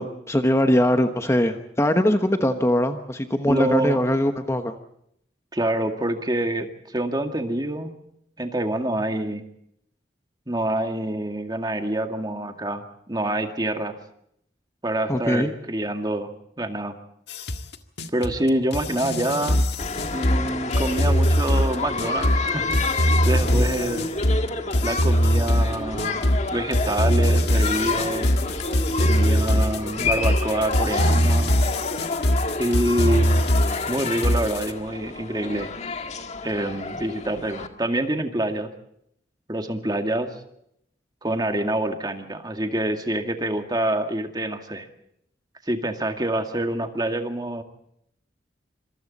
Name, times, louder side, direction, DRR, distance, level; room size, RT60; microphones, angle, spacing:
voice 1, 0.0-4.7 15.1-15.5 23.5-23.7, left 1 dB, 15° left, 7 dB, 1.2 m, -22 dB
voice 2, 3.5-4.0 5.5-7.9 8.4-9.4 10.5-13.9 14.8-16.3 16.6-16.9 18.1-19.6 20.1-22.7 23.2-24.1 24.8-26.2 26.5-28.3 29.0-31.6 32.6-33.4 33.9-35.7 36.4-38.7 39.5-40.3 41.2-44.9 45.7-47.6, right 1 dB, 25° right, 5 dB, 2.1 m, -26 dB
sound 1, 17.3-34.7, equal, 70° left, 1.7 m, -22 dB
sound 2, 19.8-37.7, left 3 dB, 40° left, 1.8 m, -30 dB
27.0 x 26.0 x 4.2 m, 0.73 s
head